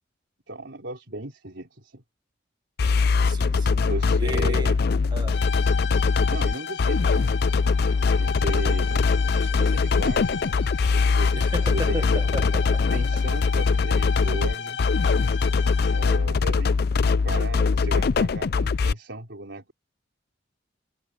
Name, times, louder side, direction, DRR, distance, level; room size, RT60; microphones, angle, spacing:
voice 1, 0.5-2.0 3.8-4.8 6.2-7.3 8.0-10.4 10.9-12.4 12.9-14.8 15.9-19.7, right 2 dB, 85° right, 3.9 m, -36 dB
sound 1, 2.8-18.9, left 4 dB, 55° left, 0.5 m, -22 dB
voice 2, 3.2-3.9 4.2-4.7 5.1-5.4 11.4-13.2, right 1 dB, 25° right, 1.7 m, -34 dB
sound 2, 5.3-16.4, left 7 dB, 75° left, 1.4 m, -35 dB
head